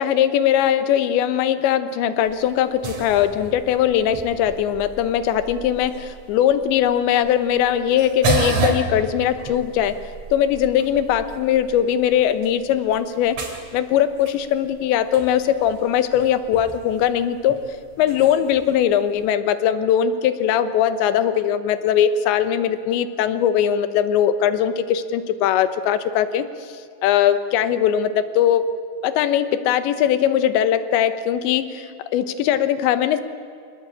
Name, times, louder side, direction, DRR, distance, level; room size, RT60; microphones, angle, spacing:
voice 1, 0.0-10.0 10.3-13.4 13.7-17.6 18.0-26.5 27.0-28.7 29.0-33.2, left 10 dB, 85° left, 12 dB, 3.4 m, -20 dB
sound 1, 2.2-19.2, right 4 dB, 40° right, 3.9 m, -33 dB
26.5 x 19.0 x 8.6 m, 2.4 s
omnidirectional pair, 5.1 m